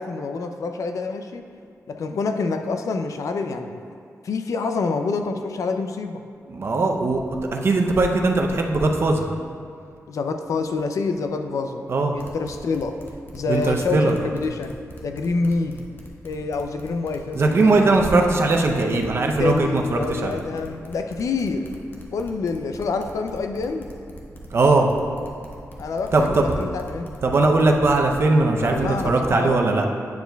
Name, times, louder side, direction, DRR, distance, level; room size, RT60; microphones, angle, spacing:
voice 1, 0.0-1.4 1.9-3.8 4.2-6.2 10.1-11.8 12.1-13.0 13.3-14.7 15.0-15.8 16.2-18.1 18.7-21.7 22.1-23.9 25.8-27.1 28.6-29.7, left 4 dB, 75° left, 6 dB, 0.4 m, -27 dB
voice 2, 6.5-7.2 7.5-9.3 11.9-12.1 13.5-14.2 17.3-20.4 24.5-24.9 26.1-26.6 27.2-29.8, right 3 dB, 50° right, 2 dB, 0.6 m, -19 dB
sound 1, 12.2-28.2, equal, 40° left, 0.9 m, -42 dB
9.2 x 6.8 x 2.3 m, 2.3 s
wide cardioid pair, 135°, 6 cm